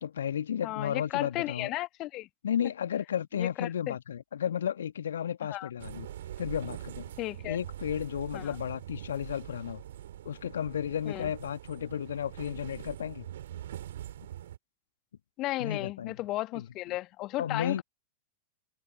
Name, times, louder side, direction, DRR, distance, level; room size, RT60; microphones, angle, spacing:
voice 1, 0.0-1.7 2.4-6.1 6.4-7.1 7.4-9.8 10.2-13.2 15.6-16.1 16.5-16.6 17.4-17.8, left 9 dB, 65° left, 1.6 m, -33 dB
voice 2, 0.6-2.3 3.3-4.0 5.5-5.7 7.2-7.6 8.3-8.6 11.1-11.3 15.4-17.8, left 17 dB, 35° left, 1.7 m, -34 dB
sound 1, 5.8-14.6, right 12 dB, 60° right, 3.4 m, -43 dB
figure-of-eight pair, 90°, 0 cm